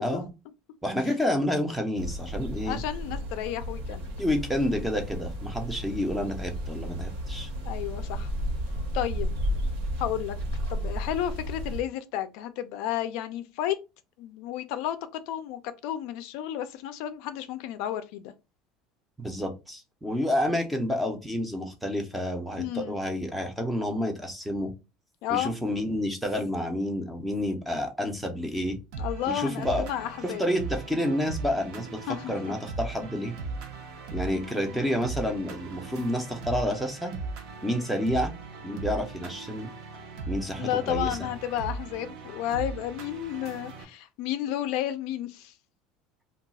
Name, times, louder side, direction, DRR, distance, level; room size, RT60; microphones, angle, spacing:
voice 1, 0.8-2.8 4.2-7.5 19.2-24.7 25.3-28.8 29.3-29.9 30.2-32.0 32.3-33.3 34.1-37.1 37.6-38.3 38.6-39.7 40.3-41.2, equal, 5° right, 0.5 m, -29 dB
sound 1, 2.0-11.8, equal, 80° right, 1.3 m, -33 dB
voice 2, 2.6-4.1 7.7-8.3 8.9-9.4 10.0-10.4 10.7-13.8 14.2-18.3 22.6-23.0 25.2-25.5 29.0-30.4 32.1-32.3 34.3-34.8 40.6-45.5, left 11 dB, 60° left, 0.3 m, -32 dB
sound 2, 28.9-43.8, right 3 dB, 60° right, 0.6 m, -38 dB
2.3 x 2.3 x 3.9 m
cardioid pair, 165°, 0 cm